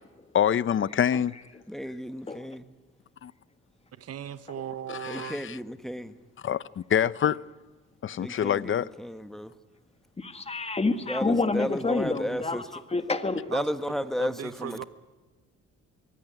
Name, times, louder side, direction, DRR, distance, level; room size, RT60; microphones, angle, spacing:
voice 1, 0.3-1.3 3.2-3.3 5.0-5.6 6.4-7.4 8.0-8.9, left 9 dB, 40° left, 0.7 m, -26 dB
voice 2, 1.7-2.6 5.1-6.1 8.2-9.5 11.1-12.6 13.5-14.8, equal, ahead, 1.2 m, -33 dB
voice 3, 4.0-5.4 13.5-13.7 14.2-14.8, right 10 dB, 55° right, 1.0 m, -37 dB
voice 4, 10.2-13.4, left 3 dB, 20° left, 1.6 m, -28 dB
23.0 x 16.5 x 9.7 m
cardioid pair, 90°, 30 cm